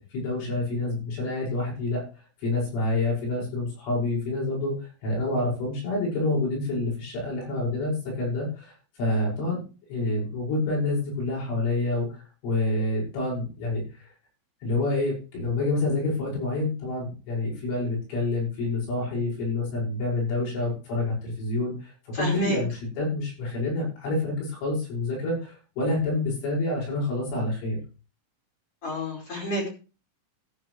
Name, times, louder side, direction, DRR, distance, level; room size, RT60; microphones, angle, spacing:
voice 1, 0.0-2.0 2.4-9.6 9.9-14.1 14.6-22.7 23.0-27.8, left 2 dB, 65° left, -4 dB, 8.2 m, -28 dB
voice 2, 22.1-22.6 28.8-29.7, equal, 30° left, -1 dB, 5.1 m, -29 dB
15.0 x 9.6 x 3.2 m, 0.34 s
omnidirectional pair, 5.9 m